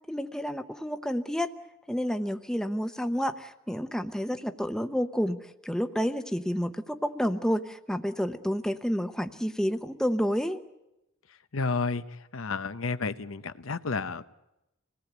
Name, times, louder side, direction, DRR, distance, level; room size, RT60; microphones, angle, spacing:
voice 1, 0.1-1.5 1.9-10.6, equal, 5° left, 8 dB, 0.8 m, -30 dB
voice 2, 11.5-12.0 12.3-14.3, left 4 dB, 85° left, 12 dB, 0.9 m, -31 dB
26.5 x 18.5 x 8.0 m, 0.93 s
head